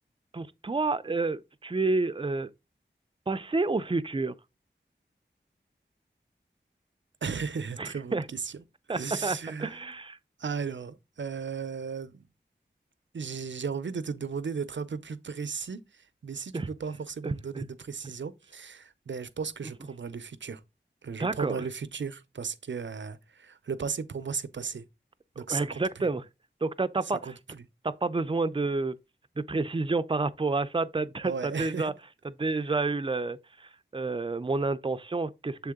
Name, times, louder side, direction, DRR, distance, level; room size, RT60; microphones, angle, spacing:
voice 1, 0.3-2.5 3.3-4.3 7.8-8.3 8.9-10.2 16.5-16.7 17.2-17.7 21.2-21.6 25.4-26.2 26.6-27.3 27.8-29.0 29.4-31.9 32.2-35.7, right 3 dB, 25° right, 0.5 m, -29 dB
voice 2, 7.2-8.6 8.9-9.8 10.4-12.3 13.1-20.6 21.0-24.9 25.4-26.1 27.2-27.3 31.2-31.9, right 5 dB, 75° right, 0.5 m, -35 dB
7.0 x 3.8 x 3.5 m
wide cardioid pair, 45°, 19 cm